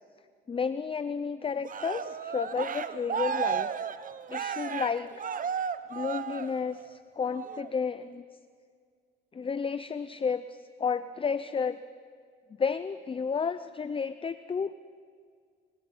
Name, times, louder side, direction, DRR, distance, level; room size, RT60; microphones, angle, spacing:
voice 1, 0.5-3.7 4.3-5.1 5.9-8.2 9.3-11.8 12.6-14.8, left 6 dB, 25° left, 13 dB, 0.6 m, -32 dB
Cheering, 1.6-6.9 7.3-7.7, right 7 dB, 45° right, 0.9 m, -34 dB
29.0 x 24.0 x 5.6 m, 2.1 s
cardioid pair, 90°, 20 cm